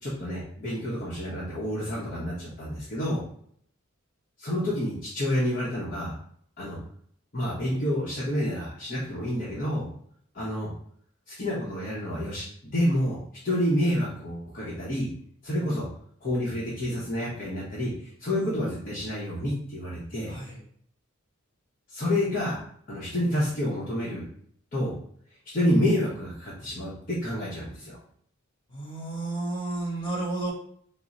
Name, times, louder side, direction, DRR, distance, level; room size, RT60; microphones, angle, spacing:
voice 1, 0.0-3.2 4.4-6.1 6.6-6.8 7.3-9.9 10.3-10.7 11.3-13.2 13.4-15.1 15.4-15.9 16.2-20.3 21.9-22.6 22.9-24.3 24.7-25.0 25.5-28.0, left 1 dB, 40° left, -7 dB, 0.8 m, -28 dB
voice 2, 20.3-20.6 28.7-30.5, right 2 dB, 25° left, -4 dB, 1.3 m, -32 dB
3.6 x 2.0 x 4.0 m, 0.63 s
head